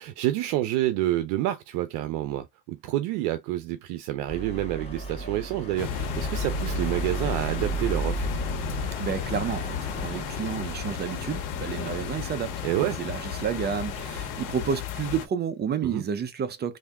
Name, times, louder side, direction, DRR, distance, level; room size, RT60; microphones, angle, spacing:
voice 1, 0.0-8.3 12.6-13.0 15.8-16.0, right 14 dB, 70° right, 0.7 m, -28 dB
sound 1, 4.3-14.5, right 2 dB, 15° left, 1.8 m, -35 dB
sound 2, 5.8-15.3, left 9 dB, 90° left, 1.1 m, -34 dB
voice 2, 9.0-12.5 13.0-16.8, right 7 dB, 25° right, 0.5 m, -30 dB
3.4 x 2.7 x 3.5 m
cardioid pair, 135°, 41 cm